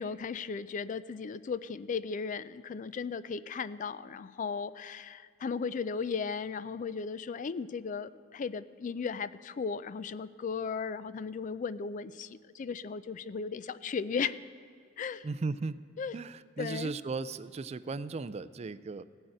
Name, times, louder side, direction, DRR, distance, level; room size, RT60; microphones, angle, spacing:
voice 1, 0.0-14.4 15.0-15.3 16.0-16.1 16.6-16.9, left 5 dB, 40° left, 16 dB, 0.4 m, -36 dB
voice 2, 15.2-15.8 16.1-19.0, right 3 dB, 35° right, 15 dB, 0.4 m, -36 dB
16.5 x 6.4 x 8.9 m, 2.4 s
head